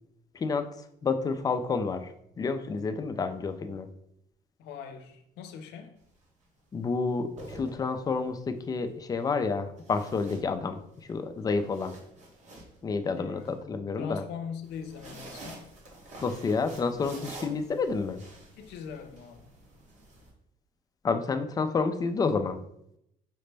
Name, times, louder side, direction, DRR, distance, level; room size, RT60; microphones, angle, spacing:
voice 1, 1.0-2.1 2.4-3.9 6.7-10.8 11.1-12.0 12.8-14.2 16.2-18.2 21.0-22.6, left 4 dB, 20° left, 0.3 m, -29 dB
voice 2, 4.6-5.9 13.2-13.6 14.0-15.6 18.6-19.4, left 6 dB, 85° left, 0.6 m, -41 dB
sound 1, 6.0-6.2 7.1-8.3 9.8-11.0 11.4-13.5 14.6-20.3, right 1 dB, 45° right, 1.1 m, -48 dB
4.9 x 2.1 x 3.3 m
cardioid pair, 110°, 17 cm